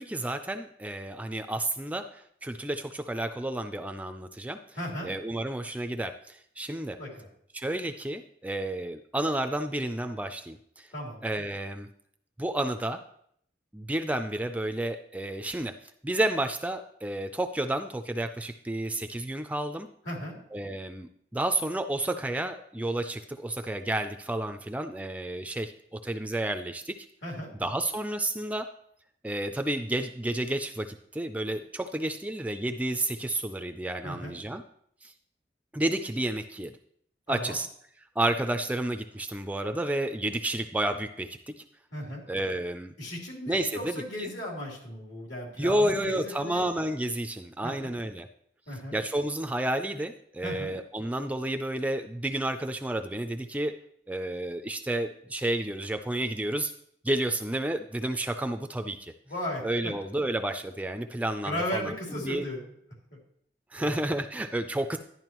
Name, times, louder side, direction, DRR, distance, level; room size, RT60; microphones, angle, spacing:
voice 1, 0.0-4.6 5.0-7.0 7.5-10.9 11.2-11.9 12.4-13.0 13.7-15.7 16.0-19.9 20.5-27.1 27.6-28.7 29.2-34.6 35.0-35.1 35.7-36.7 37.3-37.7 38.2-41.6 42.3-42.9 43.5-43.9 44.2-44.3 45.6-48.3 48.9-53.7 54.1-56.7 57.0-59.1 59.6-62.4 63.7-65.0, right 1 dB, 10° right, 7 dB, 0.3 m, -31 dB
voice 2, 4.7-5.1 7.0-7.3 10.9-11.2 20.0-20.4 27.2-27.5 34.0-34.3 37.3-37.5 41.9-42.2 43.0-46.7 47.6-47.9 48.7-49.0 50.4-50.7 59.3-59.9 61.4-62.6 63.8-64.0, left 1 dB, 75° left, -2 dB, 3.4 m, -36 dB
11.0 x 11.0 x 3.0 m, 0.68 s
head